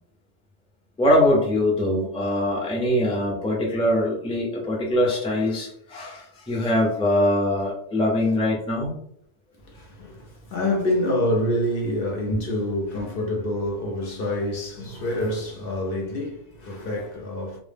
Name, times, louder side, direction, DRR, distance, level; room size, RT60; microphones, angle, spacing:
voice 1, 1.0-8.9, left 1 dB, 10° left, 0.4 m, -22 dB
voice 2, 9.7-17.6, left 1 dB, 60° left, 0.7 m, -27 dB
2.0 x 2.0 x 3.2 m
omnidirectional pair, 1.2 m